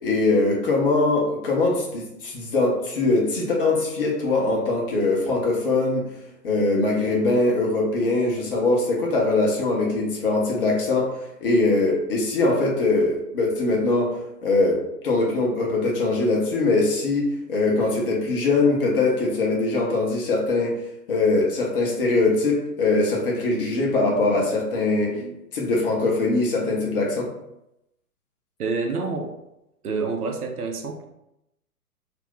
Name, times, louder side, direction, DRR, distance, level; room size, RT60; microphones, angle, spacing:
voice 1, 0.0-6.1 6.4-20.8 21.1-27.3, left 2 dB, 35° left, -1 dB, 0.7 m, -22 dB
voice 2, 28.6-29.3 29.8-31.0, right 4 dB, 70° right, 3 dB, 0.7 m, -27 dB
2.5 x 2.1 x 3.5 m, 0.85 s
figure-of-eight pair, 115°, 46 cm